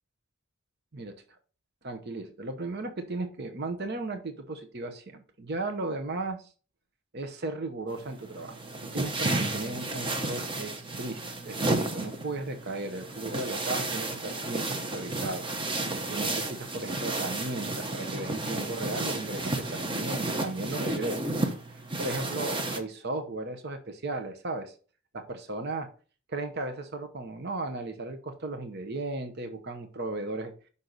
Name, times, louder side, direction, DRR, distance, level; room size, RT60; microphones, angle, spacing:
voice 1, 1.8-6.4 7.1-15.5 16.1-21.4 21.7-24.7 25.1-25.9 26.3-30.5, right 2 dB, 50° right, 7 dB, 0.9 m, -35 dB
sound 1, 7.9-22.8, right 2 dB, 25° right, 0.8 m, -32 dB
6.4 x 5.5 x 4.0 m, 0.38 s
head